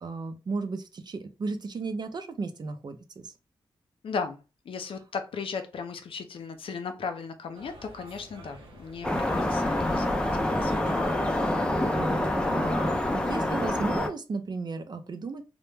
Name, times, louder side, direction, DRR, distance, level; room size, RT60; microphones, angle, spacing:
voice 1, 0.0-3.3 11.6-15.4, right 3 dB, 50° right, 0.4 m, -35 dB
voice 2, 4.0-10.8, left 5 dB, 70° left, 0.5 m, -36 dB
sound 1, 7.5-12.8, right 2 dB, 70° right, 0.8 m, -48 dB
sound 2, 9.0-14.1, left 1 dB, 10° left, 0.5 m, -26 dB
2.1 x 2.0 x 3.1 m
cardioid pair, 55°, 9 cm